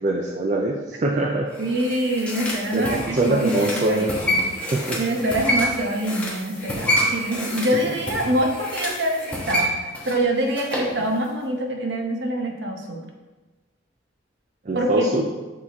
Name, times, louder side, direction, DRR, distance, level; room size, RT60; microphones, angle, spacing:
voice 1, 0.0-1.5 2.7-4.1 4.7-5.0 7.8-7.9 11.0-11.1 14.7-15.3, right 2 dB, 40° right, 0 dB, 0.4 m, -23 dB
sound 1, 1.5-10.9 11.2-11.3, equal, 5° left, 1.2 m, -28 dB
voice 2, 1.6-4.4 5.0-13.0 14.7-15.2, right 1 dB, 65° right, 2 dB, 0.9 m, -25 dB
6.3 x 4.8 x 3.5 m, 1.2 s
head